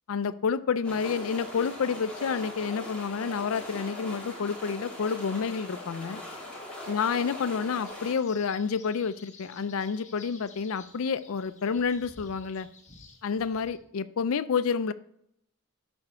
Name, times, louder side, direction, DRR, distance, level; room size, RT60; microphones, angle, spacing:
voice 1, 0.1-6.2 6.9-12.7 13.2-14.9, left 6 dB, 65° left, 14 dB, 0.4 m, -29 dB
sound 1, 0.8-8.2, left 1 dB, 5° left, 2.5 m, -41 dB
sound 2, 7.8-13.8, left 4 dB, 35° left, 1.3 m, -53 dB
11.5 x 4.2 x 4.8 m, 0.75 s
head